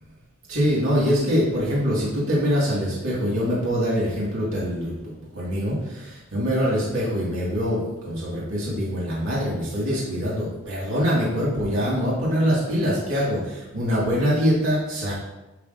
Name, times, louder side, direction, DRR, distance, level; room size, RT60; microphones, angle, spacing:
voice 1, 0.5-4.9 5.3-15.1, equal, 90° right, -7 dB, 2.0 m, -24 dB
10.0 x 5.8 x 2.6 m, 1.1 s
head